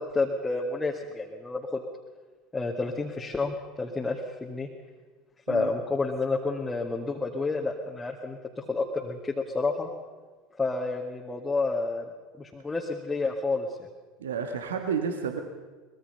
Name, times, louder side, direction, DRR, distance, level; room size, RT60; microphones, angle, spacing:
voice 1, 0.0-1.8 2.5-4.7 5.5-9.9 10.6-12.0 12.4-13.9, left 3 dB, 15° left, -1 dB, 2.0 m, -30 dB
voice 2, 14.2-15.4, right 6 dB, 75° right, 5 dB, 1.5 m, -30 dB
23.5 x 21.5 x 5.6 m, 1.3 s
figure-of-eight pair, 75°, 0 cm